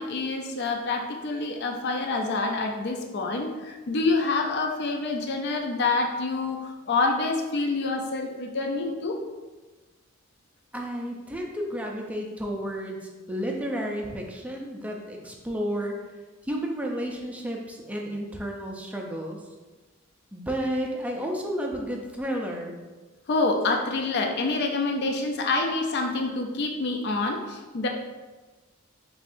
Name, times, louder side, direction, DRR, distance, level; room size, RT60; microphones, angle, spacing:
voice 1, 0.0-9.2 23.3-27.9, left 3 dB, 55° left, 3 dB, 0.4 m, -27 dB
voice 2, 10.7-13.0 13.3-16.0 16.4-19.4 20.3-22.7, equal, 5° right, 0 dB, 0.4 m, -31 dB
5.2 x 3.1 x 2.5 m, 1.3 s
head